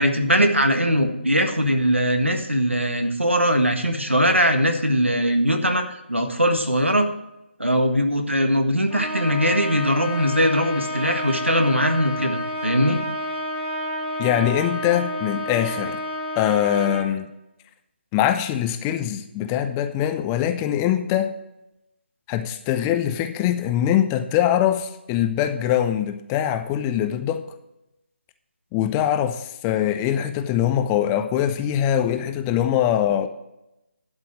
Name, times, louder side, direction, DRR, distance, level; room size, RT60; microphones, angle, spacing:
voice 1, 0.0-7.1 7.6-13.0, equal, 90° right, 6 dB, 1.6 m, -21 dB
Trumpet, 8.9-17.1, left 1 dB, 60° right, 4.1 m, -30 dB
voice 2, 14.2-16.0 16.4-17.3 18.1-21.3 22.3-27.4 28.7-33.3, left 10 dB, 10° left, 9 dB, 0.3 m, -22 dB
11.5 x 5.2 x 6.3 m, 0.91 s
figure-of-eight pair, 150°, 6 cm